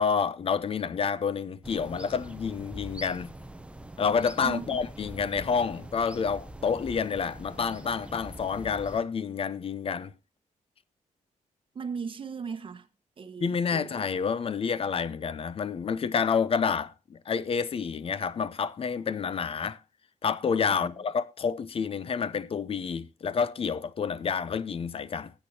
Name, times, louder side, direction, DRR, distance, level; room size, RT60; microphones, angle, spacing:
voice 1, 0.0-3.3 4.0-10.1 13.4-19.8 20.2-25.3, left 6 dB, 45° left, 0.7 m, -29 dB
sound 1, 1.6-9.0, right 1 dB, 10° right, 0.8 m, -44 dB
voice 2, 4.4-4.8 11.7-12.8 13.2-14.0 20.7-20.9, right 5 dB, 40° right, 1.4 m, -37 dB
19.0 x 8.2 x 2.8 m
wide cardioid pair, 125°, 13 cm